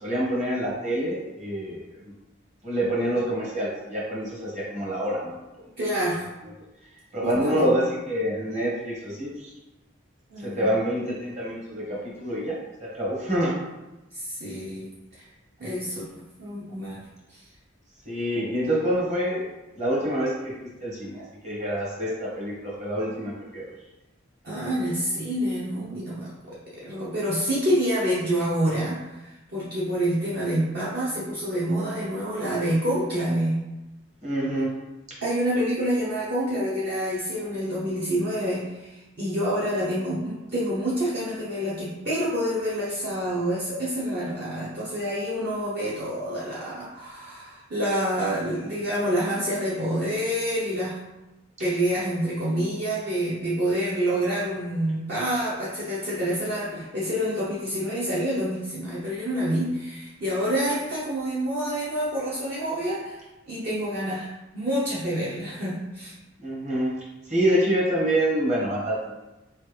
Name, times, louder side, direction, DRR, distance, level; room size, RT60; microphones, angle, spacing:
voice 1, 0.0-1.8 2.6-5.3 7.1-9.5 10.4-12.5 12.8-13.6 18.1-19.4 19.8-20.5 20.8-23.6 34.2-34.7 66.4-67.0 67.3-69.1, equal, 35° right, -4 dB, 1.2 m, -26 dB
voice 2, 5.8-6.3 7.2-7.8 10.3-10.7 14.1-15.3 15.6-16.1 16.4-17.4 24.4-33.6 35.2-51.0 51.6-66.1, equal, 50° right, -8 dB, 0.9 m, -27 dB
4.4 x 3.2 x 3.3 m, 1.0 s
head